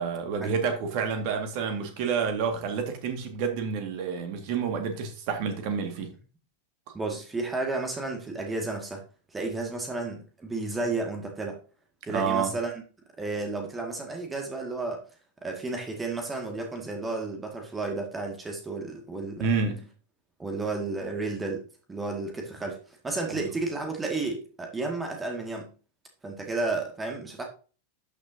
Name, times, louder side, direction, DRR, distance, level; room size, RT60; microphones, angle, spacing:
voice 1, 0.0-6.1 12.1-12.5 19.4-19.9 23.4-23.5, right 6 dB, 45° right, 2.0 m, -29 dB
voice 2, 6.9-9.0 9.3-11.6 12.0-12.7 13.2-15.0 15.4-19.5 20.4-22.8 23.0-25.7 26.2-27.5, right 3 dB, 15° right, 2.1 m, -32 dB
12.5 x 6.3 x 2.8 m
figure-of-eight pair, 90°, 0 cm